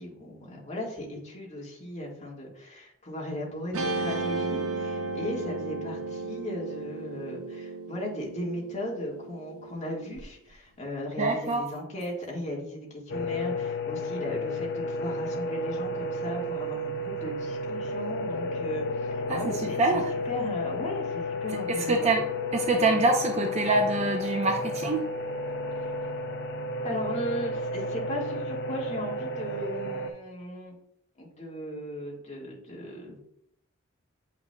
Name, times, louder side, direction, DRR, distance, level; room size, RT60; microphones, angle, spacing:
voice 1, 0.0-22.1 26.8-30.8 31.2-33.2, left 1 dB, 35° left, -2 dB, 1.5 m, -36 dB
Guitar, 3.7-10.2, right 3 dB, 80° right, 0.8 m, -34 dB
voice 2, 11.2-11.6 19.3-19.5 19.8-20.0 21.7-22.2 22.5-25.0, right 3 dB, 30° right, 2 dB, 0.5 m, -25 dB
sound 1, 13.1-30.1, left 2 dB, 55° left, 0.4 m, -32 dB
7.4 x 5.8 x 2.2 m, 0.75 s
head